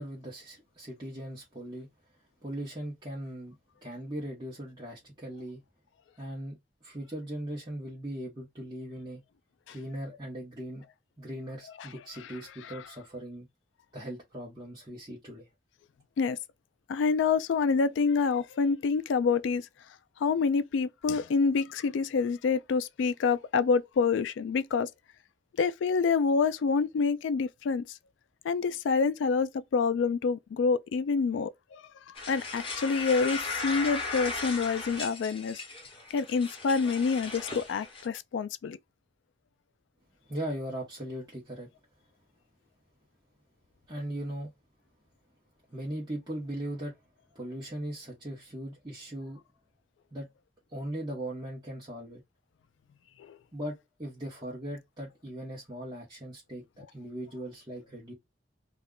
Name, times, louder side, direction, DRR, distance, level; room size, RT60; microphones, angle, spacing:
voice 1, 0.0-1.9 2.4-3.5 3.8-5.6 6.2-9.2 9.7-10.8 11.2-13.5 13.9-15.5 40.3-41.7 43.9-44.5 45.7-47.0 47.3-49.4 50.1-50.3 50.7-52.2 53.5-58.1, right 1 dB, 25° right, 0.9 m, -39 dB
voice 2, 16.9-19.7 20.2-24.9 25.6-27.8 28.4-35.6 36.1-38.8 53.2-53.4, left 5 dB, 85° left, 0.3 m, -27 dB
sound 1, 32.1-38.1, left 3 dB, 30° left, 0.9 m, -37 dB
2.4 x 2.1 x 3.6 m
head